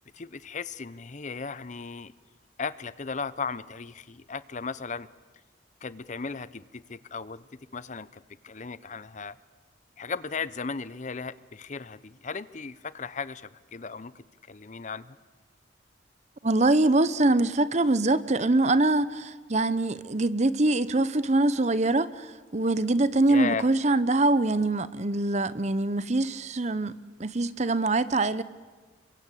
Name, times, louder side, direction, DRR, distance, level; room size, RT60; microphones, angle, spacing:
voice 1, 0.1-2.1 2.6-5.1 5.8-7.4 7.7-9.4 10.0-15.2 23.3-23.7, left 5 dB, 40° left, 0.7 m, -36 dB
voice 2, 16.4-28.4, right 2 dB, 40° right, 0.8 m, -24 dB
27.5 x 23.0 x 8.5 m
head